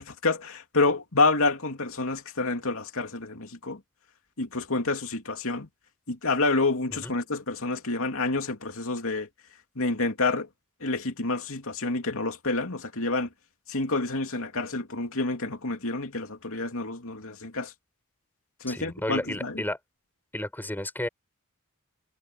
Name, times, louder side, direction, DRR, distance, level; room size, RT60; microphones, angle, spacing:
voice 1, 0.0-3.8 4.4-5.7 6.1-9.3 9.8-10.5 10.8-13.3 13.7-17.7 18.6-19.6, left 3 dB, 65° left, 3.0 m, -28 dB
voice 2, 18.7-19.8 20.3-21.1, left 1 dB, 10° left, 6.3 m, -32 dB
head